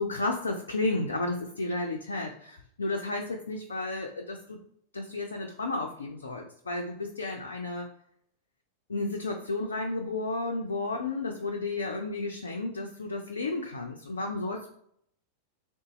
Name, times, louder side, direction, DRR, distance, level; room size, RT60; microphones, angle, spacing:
voice 1, 0.0-4.6 4.9-7.9 8.9-14.7, left 2 dB, 70° left, 1 dB, 0.4 m, -32 dB
3.9 x 2.1 x 4.0 m, 0.69 s
figure-of-eight pair, 90°, 0 cm